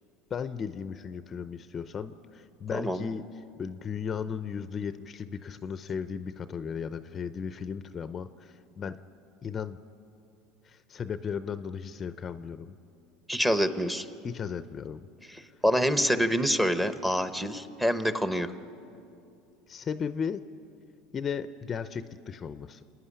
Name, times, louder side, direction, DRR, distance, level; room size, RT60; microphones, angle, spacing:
voice 1, 0.3-3.2 3.6-9.0 9.4-9.8 10.6-12.8 14.2-15.1 19.7-20.4 21.1-22.8, left 6 dB, 30° left, 13 dB, 0.5 m, -35 dB
voice 2, 2.7-3.0 13.3-14.1 15.3-18.5, equal, 5° right, 10 dB, 0.9 m, -26 dB
27.0 x 9.6 x 9.9 m, 2.6 s
supercardioid pair, 110°, 0 cm